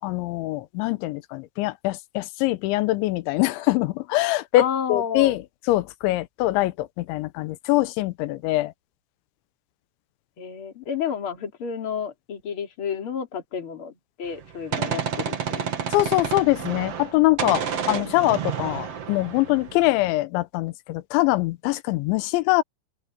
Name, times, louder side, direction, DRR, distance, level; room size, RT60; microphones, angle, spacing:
voice 1, 0.0-5.4 5.7-8.7 15.9-22.6, left 18 dB, 85° left, 3.1 m, -23 dB
voice 2, 4.6-5.4 10.4-15.6, left 7 dB, 35° left, 3.1 m, -31 dB
Gunshot gunfire, 14.3-17.1 17.4-20.1, right 7 dB, 50° right, 2.0 m, -30 dB
open air
omnidirectional pair, 5.3 m